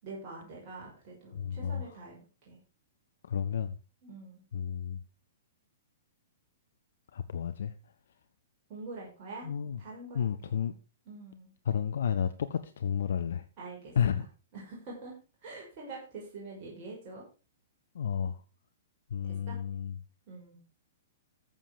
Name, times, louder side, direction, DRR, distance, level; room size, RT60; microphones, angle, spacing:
voice 1, 0.0-2.2 2.4-2.6 4.0-4.4 8.7-9.5 9.8-10.8 11.1-11.5 13.6-14.0 14.5-15.1 15.4-17.2 19.2-19.6 20.3-20.6, right 3 dB, 40° right, 5.8 m, -45 dB
voice 2, 1.3-1.8 3.2-3.7 4.5-5.0 7.1-7.7 9.4-9.8 10.1-10.7 11.7-13.4 14.0-14.2 17.9-18.4 19.1-19.9, left 8 dB, 65° left, 0.8 m, -31 dB
14.5 x 7.3 x 5.0 m
figure-of-eight pair, 110°, 0 cm